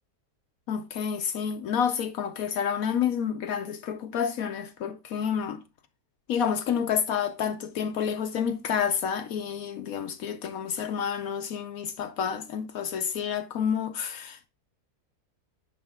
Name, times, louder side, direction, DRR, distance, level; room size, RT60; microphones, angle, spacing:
voice 1, 0.7-5.6 6.3-14.5, left 7 dB, 70° left, 1.1 m, -29 dB
9.6 x 5.1 x 3.4 m
omnidirectional pair, 1.7 m